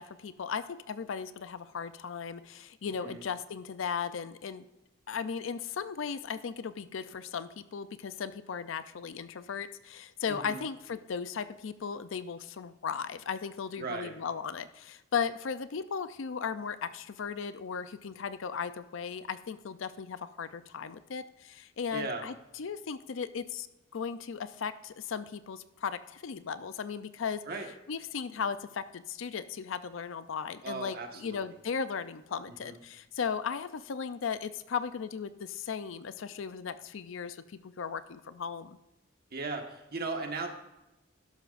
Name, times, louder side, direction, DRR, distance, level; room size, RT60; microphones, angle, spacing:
voice 1, 0.0-4.6 5.1-23.7 23.9-27.4 27.9-38.8, left 6 dB, 70° left, 13 dB, 0.5 m, -36 dB
voice 2, 10.3-10.6 13.8-14.1 21.9-22.3 27.4-27.7 30.6-31.5 32.6-32.8 39.3-40.5, right 3 dB, 50° right, 4 dB, 1.4 m, -37 dB
12.5 x 11.5 x 2.5 m, 0.98 s
head